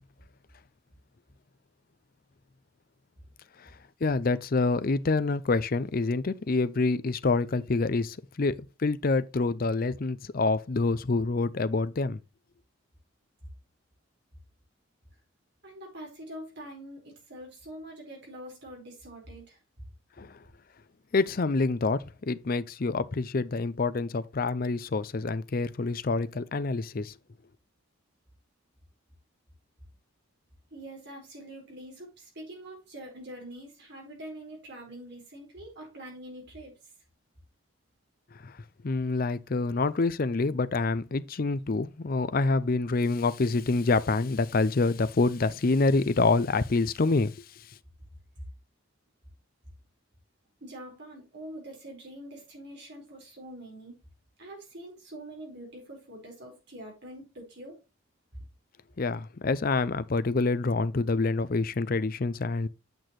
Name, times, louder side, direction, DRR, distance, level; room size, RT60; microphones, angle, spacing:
voice 1, 4.0-12.2 20.2-20.4 21.1-27.1 38.4-38.6 38.8-47.7 59.0-62.7, left 3 dB, 45° left, 0.5 m, -27 dB
voice 2, 15.6-19.6 30.7-36.7 50.6-54.0 54.4-57.8, right 1 dB, 55° right, 4.6 m, -44 dB
8.8 x 6.1 x 3.1 m
head